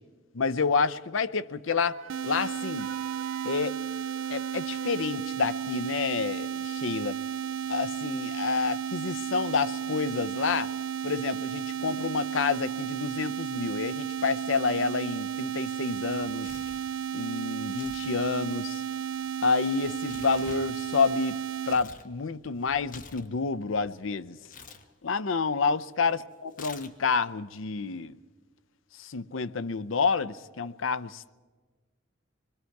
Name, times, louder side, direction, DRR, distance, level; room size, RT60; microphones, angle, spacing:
voice 1, 0.3-2.0 2.2-2.9 3.4-3.8 4.3-7.2 7.7-10.7 11.0-16.5 17.1-18.8 19.4-21.4 21.7-24.4 25.0-28.2 29.0-31.3, left 5 dB, 85° left, 0.7 m, -29 dB
Wind instrument woodwind instrument, 1.7-5.1, right 8 dB, 50° right, 3.0 m, -44 dB
sound 1, 2.1-21.8, right 8 dB, 85° right, 0.5 m, -33 dB
Tearing, 16.0-16.9 17.7-18.1 18.4-22.1 22.4-23.9 24.5-24.8 26.5-27.2, left 4 dB, 45° left, 1.3 m, -48 dB
26.0 x 21.5 x 4.7 m
head